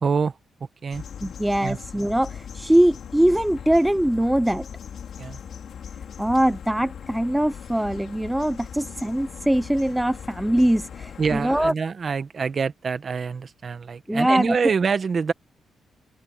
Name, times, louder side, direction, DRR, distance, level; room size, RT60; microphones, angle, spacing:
voice 1, 0.0-0.4 0.8-1.0 1.6-1.8 5.2-5.4 11.2-15.3, right 5 dB, 35° right, 1.1 m, -25 dB
sound 1, 0.9-11.7, left 8 dB, 55° left, 3.6 m, -39 dB
voice 2, 1.2-4.7 6.2-11.7 14.1-14.6, right 1 dB, 5° right, 0.3 m, -22 dB
open air
wide cardioid pair, 160°, 0 cm